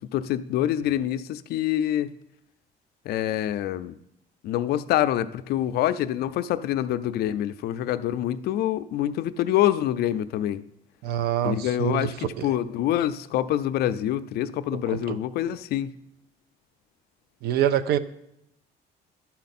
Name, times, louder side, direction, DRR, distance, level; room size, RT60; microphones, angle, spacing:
voice 1, 0.1-2.1 3.1-3.9 4.4-10.6 11.4-15.9, left 12 dB, 70° left, 13 dB, 0.4 m, -26 dB
voice 2, 11.0-12.5 14.7-15.2 17.4-18.0, right 10 dB, 70° right, 13 dB, 0.5 m, -26 dB
11.5 x 4.2 x 4.2 m, 0.80 s
cardioid pair, 110°, 17 cm